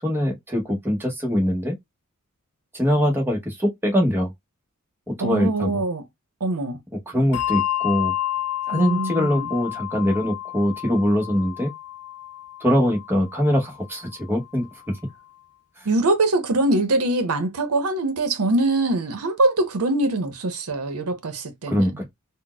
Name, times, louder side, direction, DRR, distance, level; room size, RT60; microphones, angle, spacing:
voice 1, 0.0-1.7 2.7-4.3 5.1-5.8 7.1-8.1 8.7-11.7 12.6-15.0 15.8-15.9 21.7-22.1, equal, 10° right, 0.8 m, -23 dB
voice 2, 5.2-6.0 6.4-6.8 8.7-9.5 15.8-22.0, right 2 dB, 90° right, 0.7 m, -23 dB
Bell, 7.3-14.2, left 13 dB, 70° left, 0.5 m, -30 dB
4.0 x 2.1 x 2.2 m
head